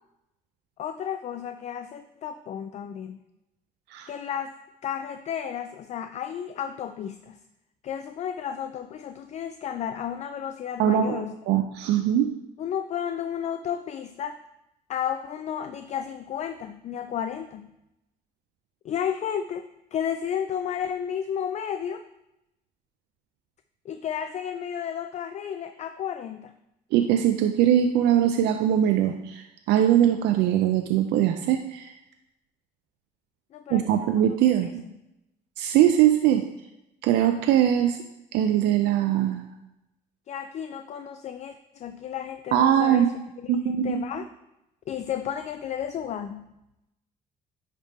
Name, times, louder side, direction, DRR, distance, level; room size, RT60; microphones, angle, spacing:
voice 1, 0.8-3.2 4.1-4.5 4.8-7.4 7.8-11.4 12.6-14.4 14.9-17.7 18.8-22.1 23.9-26.5 33.5-35.0 40.3-43.1 43.4-44.3 44.9-46.6, left 9 dB, 45° left, 9 dB, 0.4 m, -33 dB
voice 2, 10.8-12.3 26.9-31.9 33.7-34.7 35.6-36.4 37.0-38.0 38.3-39.4 42.5-43.1 43.5-44.0, right 10 dB, 80° right, 6 dB, 0.5 m, -21 dB
10.0 x 3.5 x 4.2 m, 0.90 s
cardioid pair, 110°, 17 cm